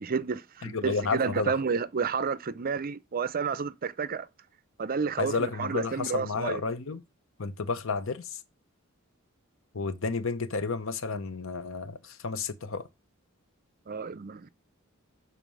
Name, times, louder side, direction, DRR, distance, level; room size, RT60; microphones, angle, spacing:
voice 1, 0.0-4.3 4.8-6.6 13.9-14.5, right 5 dB, 45° right, 0.5 m, -31 dB
voice 2, 0.6-1.5 5.2-7.0 7.4-8.4 9.7-12.9, left 4 dB, 65° left, 0.8 m, -31 dB
7.2 x 4.1 x 6.2 m
head